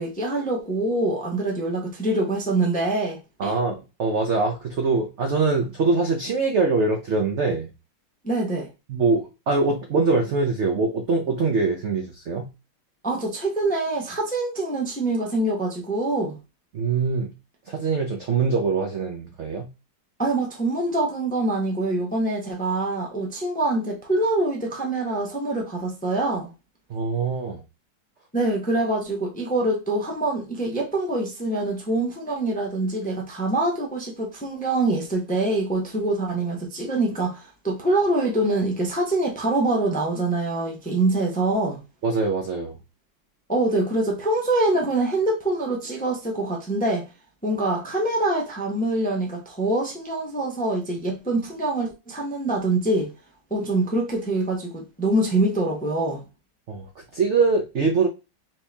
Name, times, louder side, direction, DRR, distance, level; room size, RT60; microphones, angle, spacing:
voice 1, 0.0-3.5 8.2-8.7 13.0-16.4 20.2-26.5 28.3-41.8 43.5-47.0 47.4-53.1 53.5-56.2, right 2 dB, 10° left, 0.5 m, -25 dB
voice 2, 3.4-7.7 8.9-12.5 16.7-17.3 17.7-19.7 26.9-27.6 42.0-42.7 56.7-56.9 57.1-58.1, right 4 dB, 65° right, 0.7 m, -23 dB
4.4 x 2.8 x 3.3 m
omnidirectional pair, 2.0 m